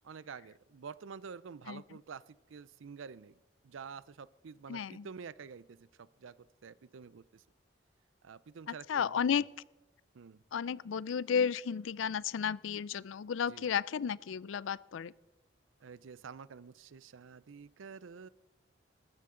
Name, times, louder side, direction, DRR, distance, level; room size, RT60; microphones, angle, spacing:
voice 1, 0.0-7.4 8.2-9.2 10.1-10.4 13.5-13.6 15.8-18.3, right 6 dB, 85° right, 19 dB, 0.5 m, -49 dB
voice 2, 4.7-5.1 8.7-9.5 10.5-15.1, left 7 dB, 80° left, 22 dB, 0.4 m, -33 dB
19.5 x 14.0 x 3.8 m, 1.0 s
head